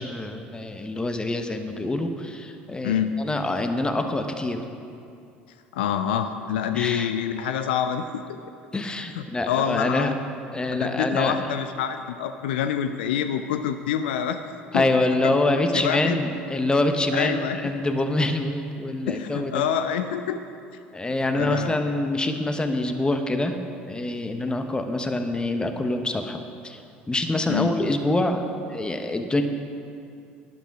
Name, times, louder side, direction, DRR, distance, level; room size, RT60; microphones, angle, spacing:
voice 1, 0.0-4.6 6.7-7.1 8.7-10.1 10.5-11.5 14.7-19.6 20.9-23.6 23.9-26.8 27.1-29.4, left 2 dB, 15° left, 7 dB, 1.1 m, -25 dB
voice 2, 2.8-3.2 5.7-8.4 9.2-10.2 10.7-14.4 14.7-15.3 15.7-16.2 17.1-17.6 19.1-20.4 21.3-21.7 27.5-27.7, left 8 dB, 70° left, 9 dB, 0.5 m, -27 dB
12.0 x 10.5 x 4.8 m, 2.6 s
figure-of-eight pair, 65°, 6 cm